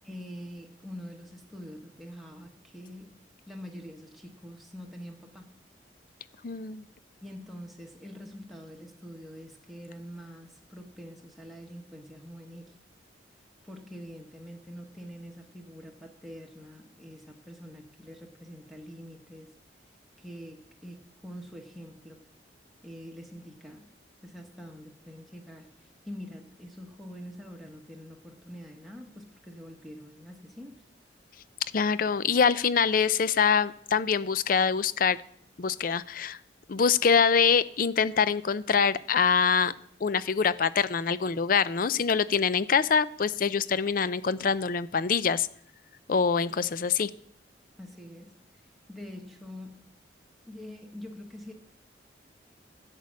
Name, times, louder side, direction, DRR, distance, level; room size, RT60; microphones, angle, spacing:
voice 1, 0.0-3.1 3.5-5.6 7.2-12.8 13.6-19.5 20.2-22.2 22.8-23.9 24.2-30.8 47.8-49.9 50.5-51.5, equal, ahead, 1.1 m, -45 dB
voice 2, 6.4-6.8 31.7-35.2 35.6-36.4 36.7-39.7 40.0-45.5 46.1-47.1, left 6 dB, 50° left, 0.5 m, -24 dB
10.5 x 8.3 x 6.4 m
head